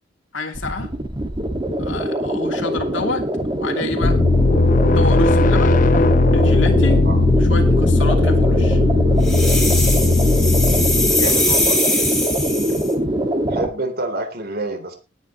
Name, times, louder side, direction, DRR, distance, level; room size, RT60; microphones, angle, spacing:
voice 1, 0.3-0.9 1.8-3.3 3.6-4.2 4.9-5.7 6.3-7.1 7.4-8.8, left 2 dB, 85° left, 4 dB, 2.9 m, -28 dB
sound 1, 0.5-13.7, right 1 dB, 25° right, 2.0 m, -23 dB
sound 2, 4.0-11.5, left 3 dB, 45° left, 0.7 m, -17 dB
sound 3, 9.2-12.9, left 1 dB, ahead, 3.9 m, -22 dB
voice 2, 11.1-11.8 13.5-15.0, right 2 dB, 55° right, 6 dB, 3.4 m, -27 dB
19.0 x 9.6 x 3.1 m, 0.30 s
head